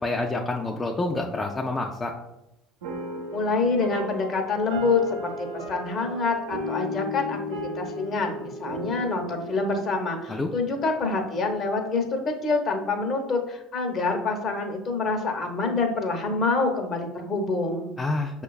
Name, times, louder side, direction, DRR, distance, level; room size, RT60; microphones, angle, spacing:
voice 1, 0.0-2.1 10.3-10.5 18.0-18.4, left 2 dB, 25° left, 0 dB, 0.4 m, -28 dB
sound 1, 2.8-11.4, equal, 80° right, 0.6 m, -35 dB
voice 2, 3.3-17.9, left 3 dB, 45° left, 3 dB, 0.8 m, -26 dB
6.1 x 2.3 x 2.3 m, 0.90 s
hypercardioid pair, 70°, 0 cm